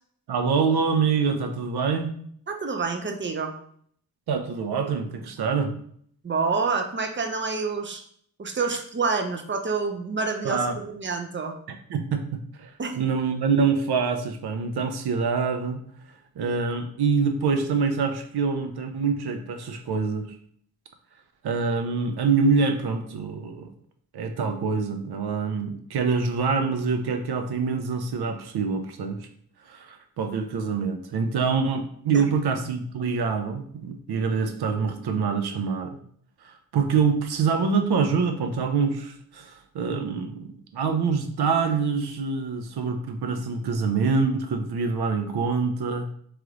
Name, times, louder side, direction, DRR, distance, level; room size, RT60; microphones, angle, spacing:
voice 1, 0.3-2.1 4.3-5.7 10.4-10.7 11.7-12.7 13.0-15.8 16.4-20.3 21.4-23.7 24.1-29.3 29.7-36.0 36.7-46.1, right 5 dB, 75° right, 7 dB, 0.7 m, -25 dB
voice 2, 2.5-3.5 6.2-8.0 8.4-11.6 12.8-13.0 32.1-32.2, right 4 dB, 30° right, 5 dB, 0.7 m, -28 dB
3.2 x 3.1 x 3.7 m, 0.62 s
cardioid pair, 55°, 39 cm